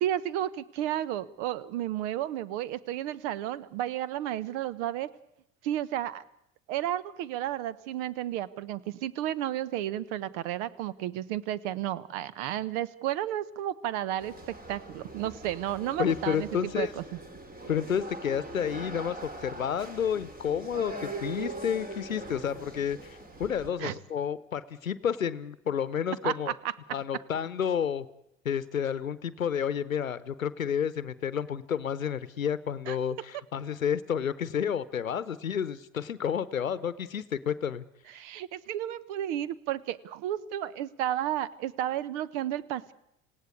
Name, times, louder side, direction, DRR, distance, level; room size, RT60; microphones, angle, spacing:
voice 1, 0.0-5.1 5.6-6.2 6.7-17.0 23.8-23.9 26.2-26.7 32.9-33.0 38.1-42.9, right 12 dB, 60° right, 17 dB, 1.2 m, -32 dB
sound 1, 14.2-23.7, right 2 dB, 20° right, 3.5 m, -42 dB
voice 2, 16.0-16.9 17.7-26.5 26.9-28.1 28.4-37.8, left 8 dB, 90° left, 16 dB, 0.8 m, -30 dB
27.0 x 17.0 x 8.4 m, 0.79 s
figure-of-eight pair, 70°, 39 cm